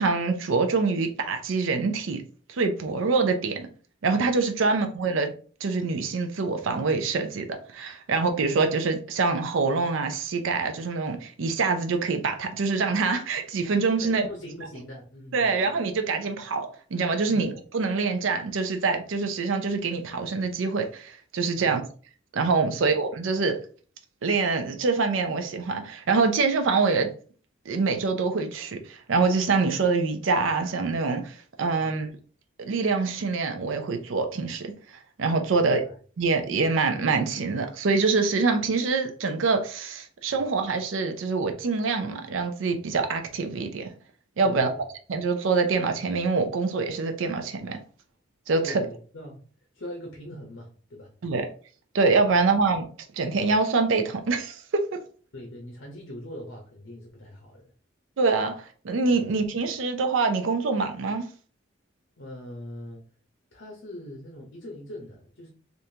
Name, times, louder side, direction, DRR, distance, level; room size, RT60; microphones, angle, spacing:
voice 1, 0.0-2.2 2.5-3.7 4.0-5.3 5.6-14.2 15.3-21.8 22.3-23.6 24.2-27.1 27.7-32.1 32.6-34.7 35.2-35.8 36.2-43.9 44.4-44.7 45.1-47.8 48.5-48.8 51.2-51.5 51.9-52.8 53.1-55.0 58.2-61.2, right 4 dB, 80° right, 0.5 m, -25 dB
voice 2, 14.0-15.8 17.3-17.5 21.5-21.7 22.6-22.8 31.8-32.0 35.4-35.9 40.3-40.4 44.4-44.8 48.6-49.4 49.7-51.1 52.3-52.4 55.3-57.7 59.1-59.3 62.2-63.0 63.5-65.5, left 1 dB, 70° left, 0.8 m, -42 dB
3.4 x 2.6 x 2.7 m
head